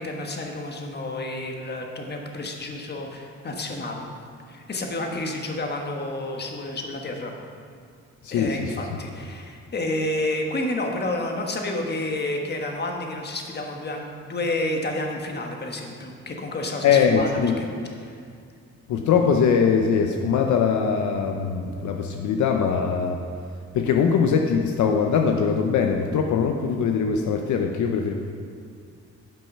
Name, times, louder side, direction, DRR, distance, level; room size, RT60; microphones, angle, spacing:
voice 1, 0.0-4.0 4.5-7.3 8.3-17.7 18.0-18.2, left 1 dB, 35° left, 2 dB, 1.3 m, -30 dB
voice 2, 8.2-8.7 16.8-17.6 18.9-23.2 23.7-28.1, left 6 dB, 70° left, 3 dB, 0.7 m, -22 dB
9.1 x 5.4 x 5.5 m, 2.2 s
cardioid pair, 90°, 30 cm